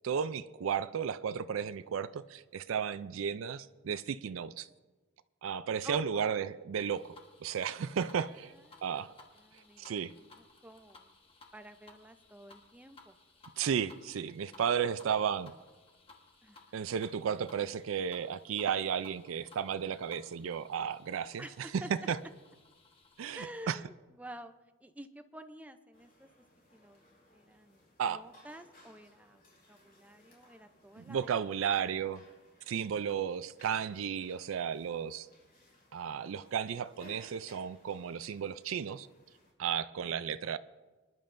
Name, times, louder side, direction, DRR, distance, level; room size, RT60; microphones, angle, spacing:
voice 1, 0.0-4.7 5.4-7.1 7.4-8.5 8.8-9.1 9.8-10.1 13.6-15.5 16.7-22.2 23.2-23.8 28.0-28.2 31.0-32.2 32.7-35.3 35.9-39.1 39.6-40.6, right 7 dB, 85° right, 0.4 m, -34 dB
voice 2, 5.8-6.3 8.7-9.1 9.4-11.1 11.5-13.1 16.4-16.6 21.4-21.9 23.4-23.9 24.1-24.5 24.8-26.3 26.7-27.0 27.3-29.4 29.7-31.3 31.6-31.7, right 1 dB, 5° right, 0.5 m, -50 dB
sound 1, 6.9-23.6, left 3 dB, 30° left, 1.3 m, -60 dB
sound 2, 25.9-39.5, left 1 dB, 45° left, 4.0 m, -62 dB
25.0 x 11.0 x 2.6 m
head